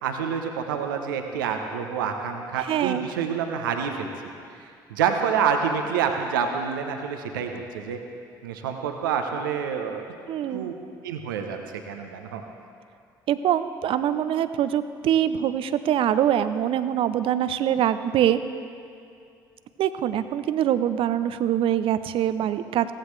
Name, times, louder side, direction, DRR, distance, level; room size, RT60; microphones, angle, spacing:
voice 1, 0.0-4.1 4.6-8.0 8.4-10.0 10.5-10.7 11.0-12.4, right 7 dB, 80° right, 4 dB, 0.9 m, -27 dB
voice 2, 2.7-3.1 10.3-10.7 13.3-18.4 19.8-22.9, right 10 dB, 55° right, 12 dB, 0.6 m, -24 dB
16.0 x 15.0 x 3.2 m, 2.4 s
hypercardioid pair, 50°, 11 cm